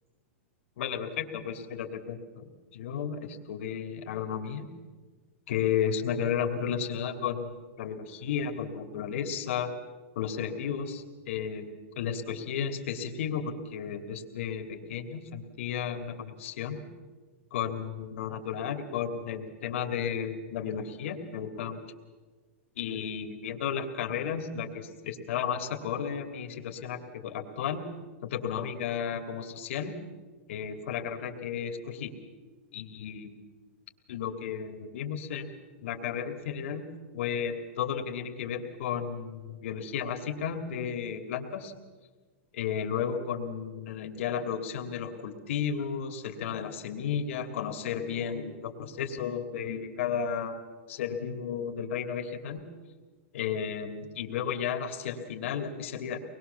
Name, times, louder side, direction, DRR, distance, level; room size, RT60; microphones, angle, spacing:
voice 1, 0.8-4.7 5.5-9.7 10.2-16.8 17.5-21.8 22.8-27.8 28.2-30.0 30.5-32.1 32.7-33.4 34.1-35.5 35.8-36.8 37.1-41.7 42.5-50.6 50.9-52.6 53.3-56.2, left 7 dB, 65° left, 5 dB, 2.6 m, -33 dB
24.0 x 21.0 x 7.0 m, 1.4 s
supercardioid pair, 155°, 7 cm